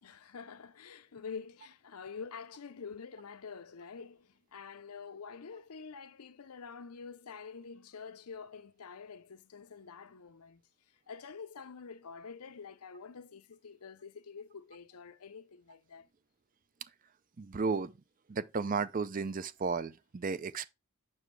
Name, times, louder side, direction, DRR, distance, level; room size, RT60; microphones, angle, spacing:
voice 1, 0.0-10.6 11.1-16.1, left 5 dB, 85° left, 0.7 m, -47 dB
voice 2, 17.4-17.9 18.3-20.7, right 4 dB, 35° right, 0.5 m, -33 dB
7.1 x 6.1 x 3.2 m
head